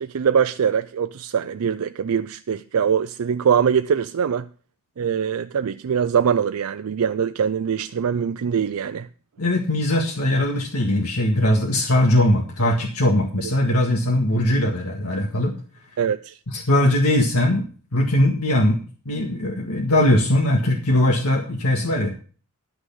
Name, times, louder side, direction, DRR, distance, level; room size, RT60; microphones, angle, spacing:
voice 1, 0.0-4.5 5.0-9.1 16.0-16.4, right 7 dB, 75° right, 0.4 m, -22 dB
voice 2, 9.4-15.5 16.5-17.7 17.9-18.8 19.1-22.1, left 1 dB, 85° left, 1.8 m, -20 dB
11.0 x 6.3 x 7.0 m
head